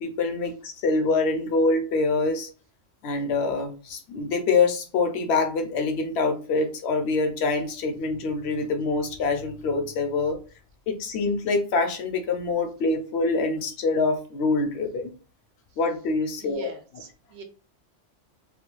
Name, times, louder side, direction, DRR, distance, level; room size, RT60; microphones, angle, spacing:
voice 1, 0.0-2.5 3.0-10.4 10.9-15.1 15.8-16.7, left 3 dB, 65° left, 5 dB, 0.8 m, -25 dB
voice 2, 16.4-17.4, right 6 dB, 55° right, 4 dB, 0.6 m, -43 dB
2.4 x 2.2 x 2.9 m, 0.36 s
omnidirectional pair, 1.3 m